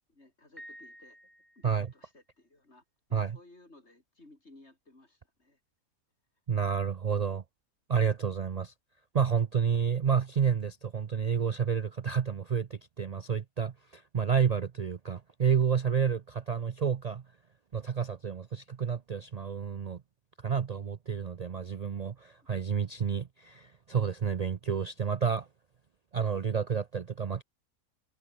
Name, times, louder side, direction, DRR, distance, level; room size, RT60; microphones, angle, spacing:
voice 1, 0.1-1.2 1.6-2.8 3.1-5.6, left 2 dB, 45° left, 5.4 m, -57 dB
Piano, 0.6-2.0, equal, ahead, 7.1 m, -51 dB
voice 2, 6.5-7.4 7.9-8.7 9.1-17.2 17.7-20.0 20.4-25.5 26.1-27.4, right 7 dB, 80° right, 0.3 m, -30 dB
omnidirectional pair, 1.6 m